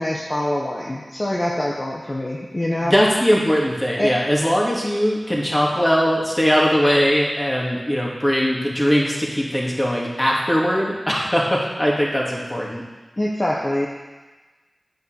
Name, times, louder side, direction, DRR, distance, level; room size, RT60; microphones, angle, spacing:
voice 1, 0.0-2.9 4.0-4.2 13.2-13.9, left 1 dB, 40° left, -3 dB, 1.1 m, -24 dB
voice 2, 2.8-12.8, equal, 20° left, -3 dB, 2.5 m, -20 dB
9.3 x 5.3 x 6.6 m, 1.3 s
cardioid pair, 45°, 0 cm